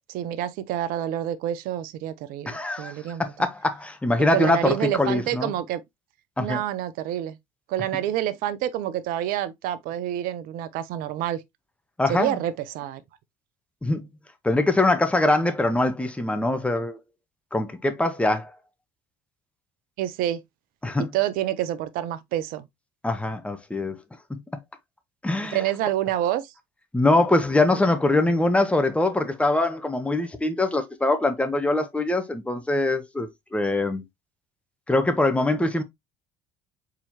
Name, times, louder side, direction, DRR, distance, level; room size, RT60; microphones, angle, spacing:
voice 1, 0.1-3.3 4.3-5.8 6.4-7.4 7.7-11.4 12.1-13.0 20.0-20.4 21.0-22.6 25.5-26.5, right 12 dB, 65° right, 0.6 m, -28 dB
voice 2, 2.5-5.5 6.4-6.6 12.0-12.4 13.8-14.1 14.4-17.0 17.5-18.6 20.8-21.1 23.0-24.0 24.3-24.4 25.2-25.6 26.9-34.0 34.9-35.8, left 2 dB, 10° left, 1.0 m, -23 dB
4.4 x 3.8 x 2.7 m
hypercardioid pair, 65°, 16 cm